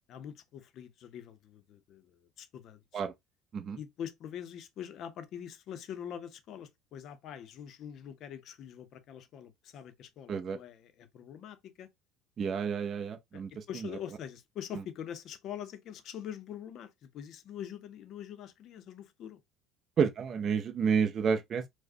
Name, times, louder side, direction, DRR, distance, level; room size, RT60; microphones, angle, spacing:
voice 1, 0.1-3.0 3.7-11.9 13.3-19.4, left 9 dB, 45° left, 0.5 m, -44 dB
voice 2, 12.4-13.6 20.0-21.7, right 6 dB, 30° right, 0.5 m, -30 dB
4.8 x 2.0 x 2.5 m
cardioid pair, 155°, 0 cm